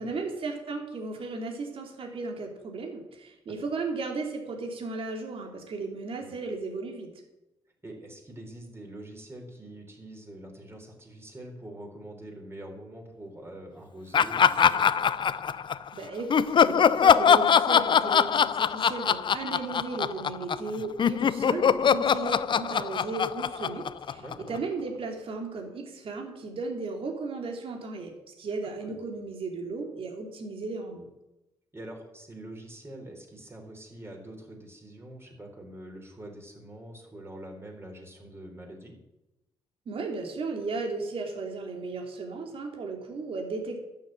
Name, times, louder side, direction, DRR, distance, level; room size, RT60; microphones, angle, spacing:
voice 1, 0.0-7.1 15.9-31.1 39.9-43.8, right 3 dB, 60° right, 2 dB, 3.0 m, -35 dB
voice 2, 7.8-14.9 24.1-24.6 28.8-29.0 31.7-39.0, right 1 dB, 25° right, 2 dB, 4.3 m, -44 dB
Laughter, 14.1-15.9 16.3-20.7 21.0-24.6, left 7 dB, 50° left, 0.5 m, -22 dB
11.5 x 7.2 x 8.9 m, 0.96 s
cardioid pair, 75°, 10 cm